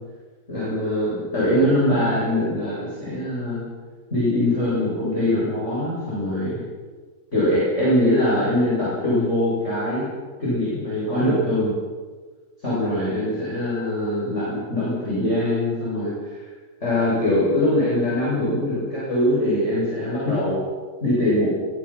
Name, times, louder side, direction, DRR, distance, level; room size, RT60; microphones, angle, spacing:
voice 1, 0.5-3.6 4.1-6.6 7.3-10.0 10.4-11.8 12.6-16.4 16.8-20.6 21.0-21.5, left 1 dB, 15° left, -8 dB, 8.2 m, -22 dB
23.5 x 23.5 x 6.2 m, 1.4 s
omnidirectional pair, 4.6 m